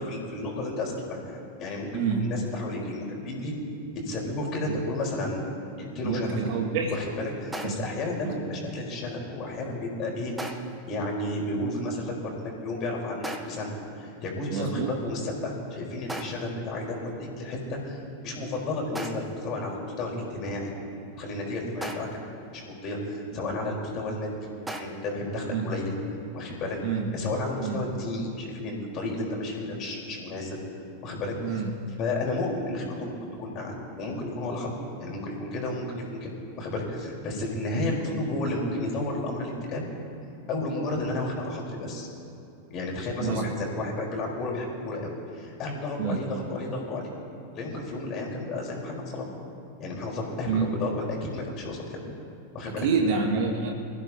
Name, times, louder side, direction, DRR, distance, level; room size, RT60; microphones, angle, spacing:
voice 1, 0.0-3.5 4.0-5.4 5.8-6.5 6.9-10.6 10.9-13.7 14.0-18.0 18.2-20.7 21.2-22.1 22.5-24.3 24.8-25.9 26.3-26.8 27.1-30.6 31.0-31.6 32.0-34.7 35.0-39.9 40.5-42.1 42.7-47.1 47.5-49.3 49.8-52.0 52.5-52.9, left 2 dB, 35° left, -1 dB, 4.5 m, -32 dB
voice 2, 1.9-2.3 4.7-4.8 6.0-6.9 7.6-7.8 8.2-8.5 14.5-14.9 25.5-25.7 26.8-27.1 27.6-27.8 31.4-31.7 38.0-38.2 43.2-43.7 46.0-46.2 50.5-50.7 52.8-53.7, right 5 dB, 50° right, 1 dB, 2.1 m, -28 dB
sound 1, 7.5-8.0 10.4-10.9 13.2-13.8 16.1-16.6 19.0-19.5 21.8-22.3 24.7-24.9, right 1 dB, 5° right, 1.2 m, -37 dB
27.0 x 15.0 x 2.9 m, 2.7 s
figure-of-eight pair, 90°, 0 cm